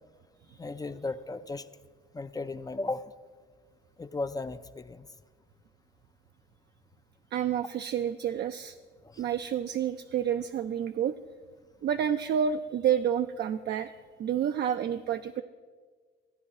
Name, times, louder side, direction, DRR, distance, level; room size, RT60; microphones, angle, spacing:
voice 1, 0.6-1.7 2.1-3.0 4.0-5.1 9.0-9.2, left 3 dB, 20° left, 12 dB, 0.4 m, -35 dB
voice 2, 7.3-8.8 9.2-11.1 11.8-13.9 14.2-15.4, right 9 dB, 60° right, 8 dB, 0.4 m, -29 dB
14.5 x 9.5 x 4.2 m, 1.5 s
cardioid pair, 90°, 20 cm